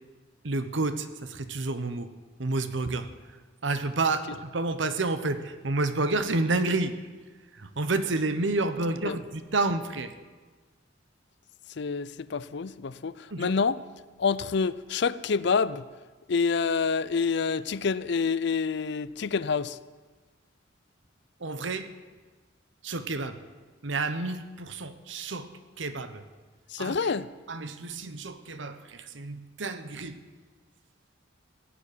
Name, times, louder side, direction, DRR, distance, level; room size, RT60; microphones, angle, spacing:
voice 1, 0.4-2.1 2.4-3.1 3.6-7.0 7.5-10.1 13.3-13.6 21.4-21.9 22.8-23.4 23.8-25.5 25.8-26.2 26.8-27.1 27.5-30.2, right 3 dB, 65° right, 1.0 m, -30 dB
voice 2, 11.8-13.8 14.2-15.8 16.3-19.8 26.7-27.3, left 5 dB, 60° left, 0.5 m, -27 dB
17.0 x 7.1 x 10.0 m
head